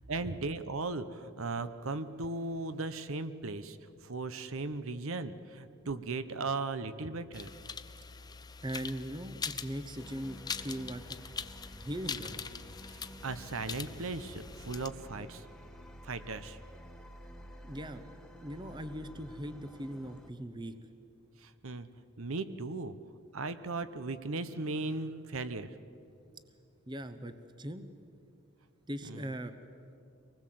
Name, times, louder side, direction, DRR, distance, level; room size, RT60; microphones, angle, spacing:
voice 1, 0.1-3.8 4.0-7.5 12.9-15.4 16.0-16.6 21.4-21.9 22.2-23.0 23.3-25.7 29.1-29.2, right 3 dB, 70° right, 12 dB, 0.9 m, -37 dB
sound 1, 7.3-14.9, left 6 dB, 20° left, 0.5 m, -43 dB
voice 2, 8.6-11.2 11.8-12.5 17.6-18.1 18.4-20.8 26.9-27.9 28.9-29.6, equal, 20° right, 10 dB, 0.8 m, -40 dB
sound 2, 10.0-20.3, equal, 5° left, 1.2 m, -51 dB
24.5 x 19.5 x 7.7 m, 2.6 s
head